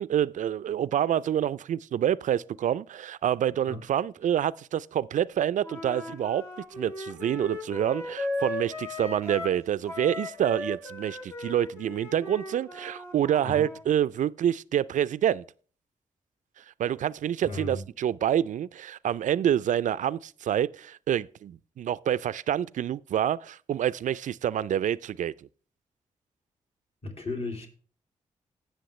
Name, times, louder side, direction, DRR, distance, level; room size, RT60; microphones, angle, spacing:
voice 1, 0.0-6.4 6.8-15.4 16.8-25.3, right 10 dB, 65° right, 0.4 m, -27 dB
Wind instrument woodwind instrument, 5.6-9.6 9.9-13.8, left 2 dB, 20° left, 2.0 m, -37 dB
voice 2, 17.4-17.8 27.0-27.7, left 2 dB, 45° left, 2.5 m, -35 dB
17.0 x 6.4 x 3.1 m
supercardioid pair, 45°, 14 cm